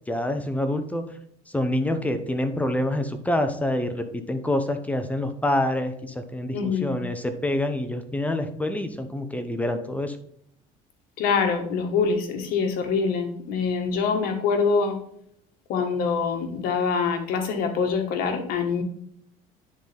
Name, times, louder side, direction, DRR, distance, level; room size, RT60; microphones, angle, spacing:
voice 1, 0.1-1.0 1.5-10.2, left 1 dB, 10° left, 8 dB, 0.8 m, -26 dB
voice 2, 6.5-6.9 11.2-15.0 15.7-18.8, left 5 dB, 70° left, 5 dB, 1.5 m, -25 dB
9.9 x 4.0 x 3.5 m, 0.70 s
cardioid pair, 115°, 16 cm